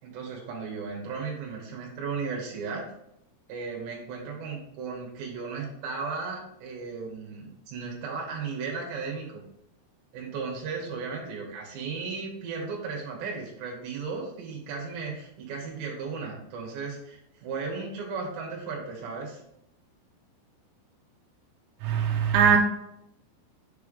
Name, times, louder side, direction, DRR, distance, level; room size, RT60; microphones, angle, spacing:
voice 1, 0.0-2.9 3.5-9.4 10.1-19.4, right 5 dB, 65° right, 3.5 m, -35 dB
voice 2, 21.8-22.6, right 7 dB, 85° right, 3.3 m, -21 dB
7.8 x 4.7 x 3.3 m
omnidirectional pair, 5.8 m